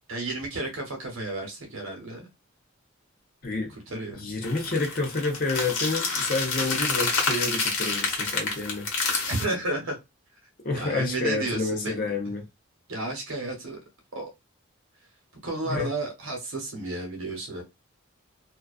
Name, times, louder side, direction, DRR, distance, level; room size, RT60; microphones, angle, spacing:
voice 1, 0.1-2.3 3.7-4.2 9.3-10.0 10.8-11.9 12.9-13.8 14.1-14.3 15.4-17.6, right 2 dB, 75° right, 0.8 m, -32 dB
voice 2, 3.4-3.7 4.2-8.9 10.6-12.5 15.6-15.9, left 3 dB, 45° left, 0.7 m, -29 dB
sound 1, 4.4-9.4, left 4 dB, 85° left, 0.8 m, -28 dB
2.3 x 2.2 x 2.3 m
head